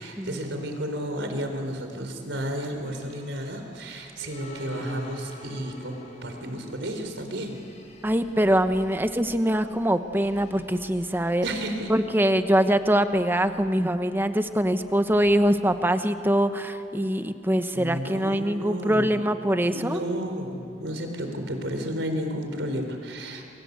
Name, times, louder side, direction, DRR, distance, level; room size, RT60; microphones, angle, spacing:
voice 1, 0.0-7.5 11.4-11.9 17.7-19.1 19.7-23.4, equal, 85° right, 5 dB, 4.1 m, -32 dB
sound 1, 2.8-15.6, equal, 40° left, 5.9 m, -47 dB
voice 2, 8.0-11.5 11.9-20.0, equal, 10° right, 9 dB, 1.1 m, -23 dB
28.5 x 23.5 x 8.2 m, 2.5 s
head